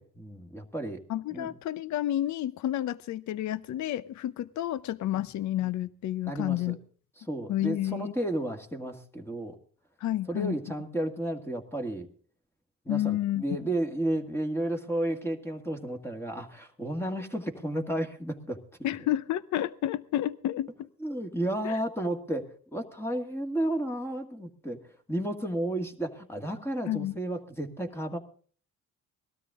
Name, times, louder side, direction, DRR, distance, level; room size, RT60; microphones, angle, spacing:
voice 1, 0.0-1.0 1.3-1.5 5.1-5.2 6.3-6.8 7.2-9.6 10.3-12.1 12.9-18.6 21.0-28.2, right 1 dB, 10° left, 2.0 m, -32 dB
voice 2, 1.1-6.8 7.5-8.1 10.0-10.6 12.9-13.4 18.8-20.9 21.6-21.8 26.9-27.1, left 13 dB, 70° left, 0.7 m, -30 dB
19.5 x 13.0 x 3.7 m
cardioid pair, 90°, 30 cm